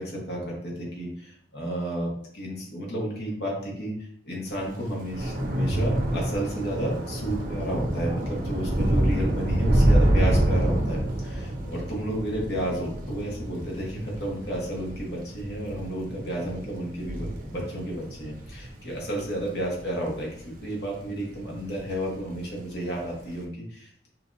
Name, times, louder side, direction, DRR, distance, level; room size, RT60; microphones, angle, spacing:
voice 1, 0.0-24.1, right 1 dB, 65° left, -2 dB, 1.5 m, -32 dB
Thunder / Rain, 4.6-21.1 21.5-21.9 22.2-22.4, right 1 dB, 50° right, 0.7 m, -27 dB
5.7 x 2.7 x 2.7 m, 0.66 s
head